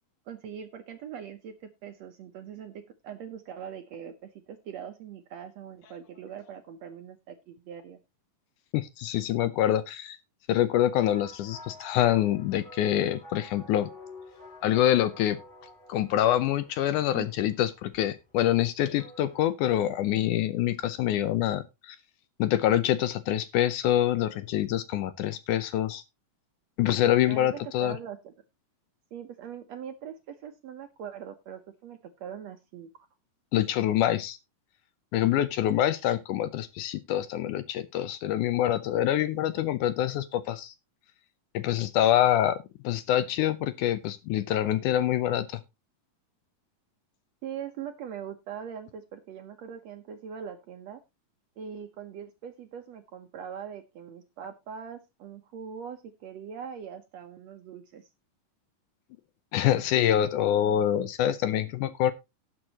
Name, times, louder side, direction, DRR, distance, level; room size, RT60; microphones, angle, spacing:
voice 1, 0.3-8.0 17.1-17.3 27.3-28.3 29.1-32.9 47.4-51.0 51.6-58.1, right 8 dB, 65° right, 6 dB, 1.7 m, -41 dB
voice 2, 8.7-10.2 10.5-13.9 14.6-15.4 15.9-22.0 22.4-26.0 26.8-28.0 33.5-34.4 35.1-40.7 41.5-42.6 42.8-45.6 59.5-62.1, left 12 dB, 75° left, 13 dB, 2.0 m, -25 dB
sound 1, 11.0-19.5, left 2 dB, 15° left, 6.3 m, -50 dB
18.0 x 6.3 x 2.9 m, 0.24 s
omnidirectional pair, 4.0 m